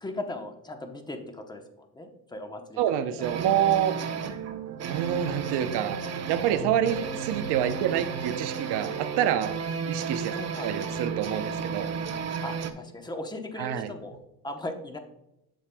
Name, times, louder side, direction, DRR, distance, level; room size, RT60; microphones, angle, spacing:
voice 1, 0.0-3.4 10.3-10.7 12.4-14.2 14.4-15.0, left 2 dB, 10° left, 5 dB, 0.8 m, -38 dB
voice 2, 2.8-4.0 4.8-6.0 6.3-9.6 9.9-10.3 10.6-11.9 13.6-13.9, right 10 dB, 80° right, 10 dB, 0.7 m, -27 dB
sound 1, 3.2-12.7, right 6 dB, 40° right, 0.8 m, -33 dB
8.8 x 6.6 x 2.2 m, 0.88 s
cardioid pair, 120°, 40 cm